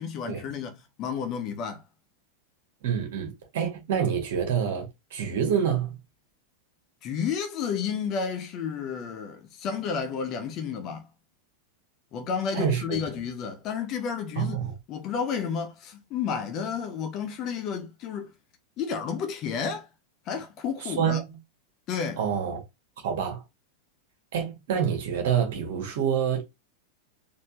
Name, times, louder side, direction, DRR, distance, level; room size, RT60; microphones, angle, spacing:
voice 1, 0.0-1.8 7.0-11.1 12.1-14.6 14.9-18.3 18.8-19.9 20.3-21.2 21.9-22.2, left 6 dB, 35° left, 1.0 m, -31 dB
voice 2, 2.8-6.0 12.5-12.8 14.4-14.7 20.8-21.2 22.2-22.6 23.0-23.4 24.3-26.4, right 8 dB, 55° right, 1.9 m, -27 dB
4.3 x 3.1 x 3.0 m
figure-of-eight pair, 90°, 0 cm